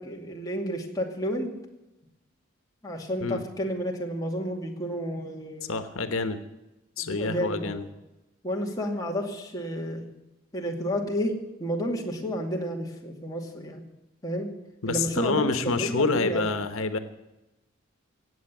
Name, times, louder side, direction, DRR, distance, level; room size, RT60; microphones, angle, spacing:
voice 1, 0.0-1.5 2.8-5.7 7.0-7.9 8.4-10.1 10.5-13.8 14.2-14.5 14.8-16.4, equal, 15° left, 0 dB, 2.4 m, -31 dB
voice 2, 5.6-6.4 7.0-7.8 14.8-17.0, left 3 dB, 90° left, 9 dB, 1.2 m, -27 dB
18.0 x 8.1 x 9.4 m, 0.97 s
head